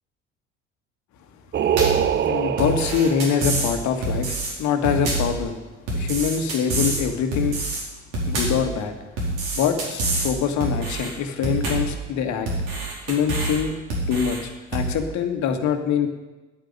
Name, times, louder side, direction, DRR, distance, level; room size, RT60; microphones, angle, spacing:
Singing, 1.5-3.6, right 8 dB, 30° right, 0.7 m, -23 dB
sound 1, 1.8-2.1 2.6-3.7 4.0-4.5 4.8-5.4 5.9-7.0 7.3-7.8 8.1-8.7 9.2-10.3 10.6-11.1 11.4-11.9 12.5-13.6 13.9-14.4 14.7-14.9, right 2 dB, 60° right, 4.6 m, -26 dB
voice 1, 2.2-5.6 5.9-7.6 8.3-8.9 9.5-12.5 13.1-13.7 14.1-16.1, left 7 dB, 50° left, 6 dB, 1.8 m, -24 dB
10.5 x 9.0 x 9.1 m, 1.2 s
figure-of-eight pair, 60°, 37 cm